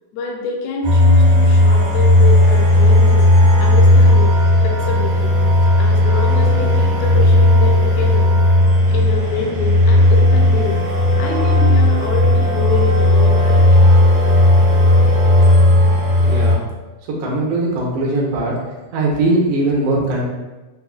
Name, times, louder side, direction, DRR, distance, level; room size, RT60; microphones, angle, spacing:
voice 1, 0.1-3.3 3.6-5.3 5.8-8.4 8.9-10.8 11.2-13.9, left 4 dB, 80° left, -1 dB, 1.9 m, -26 dB
sound 1, 0.8-16.5, left 1 dB, 50° right, 0.7 m, -13 dB
voice 2, 16.2-16.6 17.2-18.5 18.9-20.2, right 2 dB, 70° right, -3 dB, 1.6 m, -19 dB
5.5 x 2.2 x 2.3 m, 1.2 s
omnidirectional pair, 3.4 m